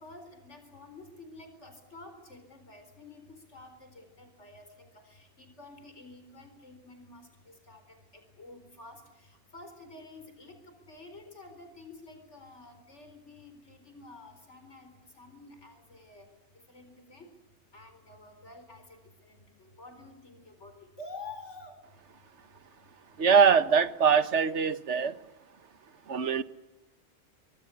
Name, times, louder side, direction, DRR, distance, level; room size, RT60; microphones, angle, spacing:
voice 1, 0.0-16.3 16.5-17.3 17.7-21.8, left 2 dB, 90° left, 7 dB, 4.5 m, -50 dB
voice 2, 23.2-25.1 26.1-26.4, right 6 dB, 80° right, 13 dB, 1.5 m, -23 dB
24.5 x 24.0 x 8.2 m, 1.0 s
omnidirectional pair, 1.2 m